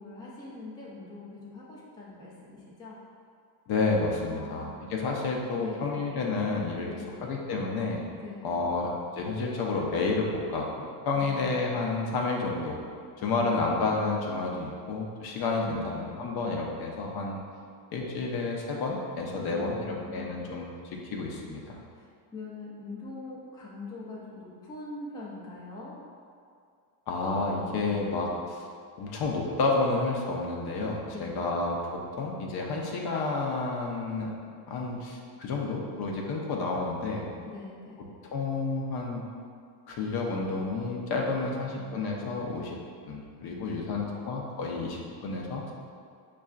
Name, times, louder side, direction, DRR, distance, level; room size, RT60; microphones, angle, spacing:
voice 1, 0.0-3.0 4.3-4.8 5.5-6.0 6.8-7.2 8.2-8.8 15.6-16.6 19.4-20.4 21.9-26.0 27.8-28.1 31.1-31.4 37.5-38.0 43.5-44.3, left 3 dB, 10° left, -6 dB, 0.4 m, -43 dB
voice 2, 3.7-6.9 7.2-8.0 8.4-12.8 13.2-17.4 17.9-21.8 27.1-28.6 29.0-34.3 34.7-37.3 38.2-39.2 39.9-42.8 43.1-45.7, left 3 dB, 50° left, -1 dB, 0.6 m, -30 dB
5.3 x 2.4 x 2.3 m, 2.3 s
cardioid pair, 120°, 49 cm